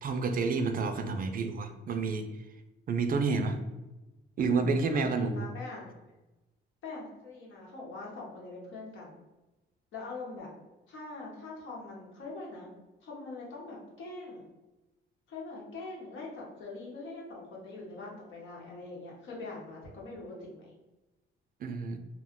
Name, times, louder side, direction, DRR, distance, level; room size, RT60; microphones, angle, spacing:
voice 1, 0.0-2.3 2.9-3.6 4.4-5.5 21.6-22.0, right 4 dB, 45° right, 7 dB, 0.4 m, -29 dB
voice 2, 1.1-1.4 4.9-6.0 6.8-9.2 9.9-10.5 10.9-12.7 13.0-14.4 15.3-20.7, left 3 dB, 75° left, -3 dB, 1.0 m, -43 dB
2.3 x 2.1 x 3.6 m, 1.1 s
cardioid pair, 90°, 20 cm